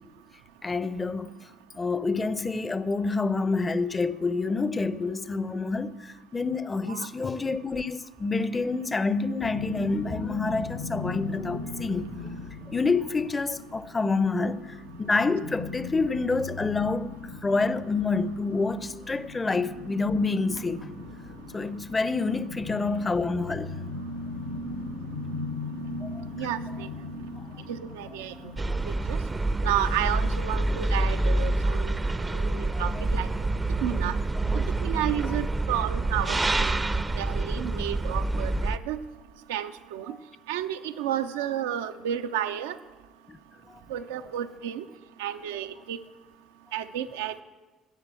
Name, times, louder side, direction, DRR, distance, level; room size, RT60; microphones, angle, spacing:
voice 1, 0.6-1.3 1.8-12.1 12.7-20.9 21.5-23.8 26.0-26.2 32.7-32.8 34.5-34.7 43.3-43.4 43.7-43.8, left 3 dB, 25° left, 0.6 m, -28 dB
sound 1, 9.4-29.3, left 2 dB, 80° left, 1.3 m, -38 dB
voice 2, 26.4-26.9 27.7-28.5 29.1-29.2 29.6-33.3 33.8-34.2 34.5-36.8 37.2-39.0 39.5-40.2 40.5-42.8 43.9-44.8 45.2-46.0 46.7-47.4, right 11 dB, 75° right, 0.6 m, -32 dB
sound 2, 28.6-38.8, right 2 dB, 20° right, 0.6 m, -27 dB
13.5 x 8.0 x 7.7 m
figure-of-eight pair, 50°, 0 cm